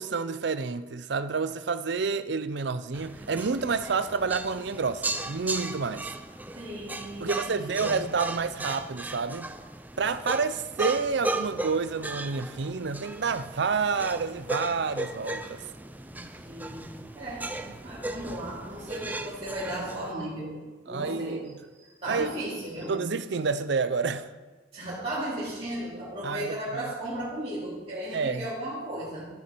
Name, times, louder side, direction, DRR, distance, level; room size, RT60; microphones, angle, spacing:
voice 1, 0.0-6.1 7.2-9.5 10.0-15.6 20.9-21.5 22.1-22.3 22.9-24.3 26.2-26.9 28.1-28.4, right 5 dB, 60° right, 0.5 m, -29 dB
sound 1, 2.9-20.1, right 2 dB, 10° right, 0.5 m, -36 dB
voice 2, 6.5-7.9 16.1-21.5 21.8-23.0 24.7-29.3, right 1 dB, 35° right, 3.0 m, -36 dB
13.0 x 7.1 x 4.5 m
head